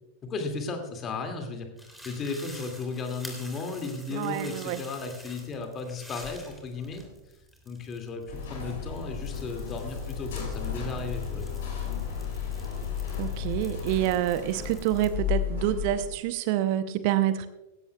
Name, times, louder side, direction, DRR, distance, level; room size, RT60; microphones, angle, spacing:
voice 1, 0.2-7.0 7.7-11.5, left 3 dB, 25° left, 5 dB, 2.3 m, -35 dB
sound 1, 1.8-15.1, equal, ahead, 3.2 m, -49 dB
voice 2, 4.1-4.8 13.2-17.5, right 12 dB, 45° right, 13 dB, 0.7 m, -27 dB
sound 2, 8.3-16.1, left 7 dB, 60° left, 5.2 m, -33 dB
17.5 x 15.5 x 2.3 m, 1.0 s
figure-of-eight pair, 90°, 0 cm